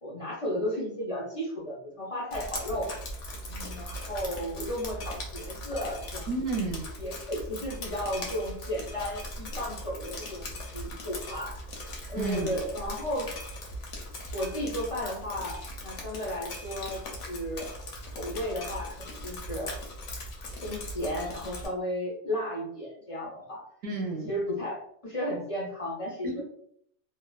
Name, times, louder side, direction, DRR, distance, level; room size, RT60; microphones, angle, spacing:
voice 1, 0.0-2.9 3.4-6.3 7.0-11.6 12.1-13.3 14.3-17.0 17.3-17.7 18.1-19.7 20.6-23.6 24.3-26.4, equal, 45° left, -3 dB, 0.4 m, -34 dB
Drip, 2.3-21.7, left 1 dB, 85° left, 1.0 m, -39 dB
voice 2, 6.3-6.9 12.2-12.6 23.8-24.3 26.2-26.4, right 3 dB, 65° right, 0 dB, 0.8 m, -31 dB
2.7 x 2.1 x 2.2 m, 0.67 s
omnidirectional pair, 1.2 m